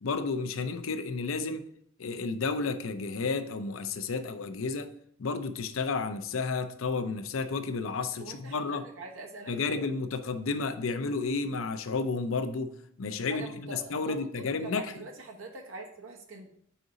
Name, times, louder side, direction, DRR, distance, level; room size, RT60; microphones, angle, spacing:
voice 1, 0.0-1.6 2.0-4.9 5.2-8.9 9.5-12.7 13.0-15.1, left 4 dB, 80° left, 0.6 m, -32 dB
voice 2, 8.2-9.8 13.3-16.5, right 2 dB, 80° right, 1.0 m, -44 dB
5.1 x 3.9 x 5.1 m
head